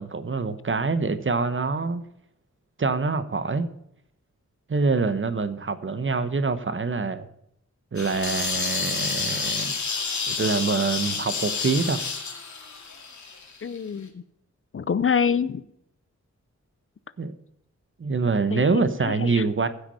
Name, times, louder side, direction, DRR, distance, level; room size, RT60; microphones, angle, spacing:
voice 1, 0.0-2.0 2.8-3.7 4.7-7.3 7.9-9.7 10.4-12.0 17.2-17.3 18.0-19.7, right 4 dB, 45° right, 12 dB, 1.0 m, -25 dB
sound 1, 8.0-13.8, left 5 dB, 75° left, 2.3 m, -29 dB
voice 2, 13.6-14.2 14.7-15.6 18.5-19.4, left 6 dB, 45° left, 16 dB, 0.6 m, -26 dB
15.5 x 6.0 x 5.5 m, 0.76 s
wide cardioid pair, 85°, 29 cm